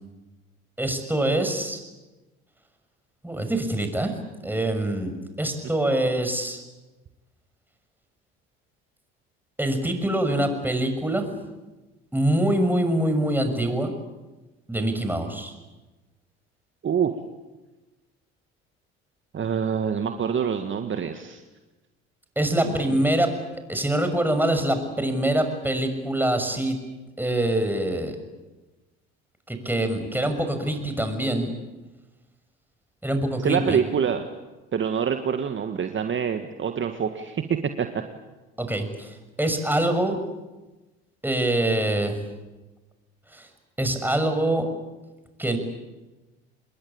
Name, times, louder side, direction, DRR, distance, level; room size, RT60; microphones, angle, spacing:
voice 1, 0.8-1.8 3.2-4.1 4.4-6.6 9.6-11.2 12.1-13.9 14.7-15.5 22.4-23.3 23.7-26.8 27.2-28.2 29.5-31.5 33.0-33.8 38.6-40.2 41.2-42.2 43.3-43.5 43.8-44.7 45.4-45.6, right 1 dB, 5° right, 7 dB, 6.2 m, -24 dB
voice 2, 19.3-21.4 22.6-23.0 33.4-34.2 34.7-38.0, right 7 dB, 40° right, 6 dB, 1.9 m, -26 dB
28.0 x 21.5 x 8.9 m, 1.1 s
hypercardioid pair, 65°, 31 cm